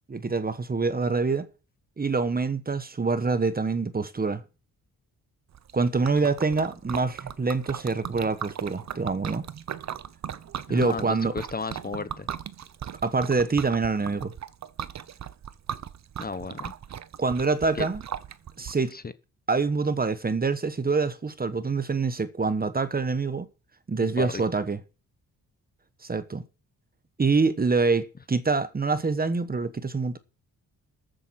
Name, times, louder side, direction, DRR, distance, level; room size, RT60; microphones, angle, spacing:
voice 1, 0.1-1.5 2.0-4.4 5.7-9.5 10.7-11.3 13.0-14.3 17.2-18.0 18.6-18.9 19.5-23.5 23.9-24.8 26.0-26.4 27.2-30.2, right 4 dB, 25° right, 1.2 m, -25 dB
Liquid, 5.5-18.7, right 9 dB, 50° right, 0.9 m, -38 dB
voice 2, 10.7-12.3 16.2-16.7 17.7-17.9 18.9-19.0 24.0-24.4, left 4 dB, 25° left, 1.0 m, -33 dB
13.5 x 7.9 x 5.9 m
cardioid pair, 80°, 35 cm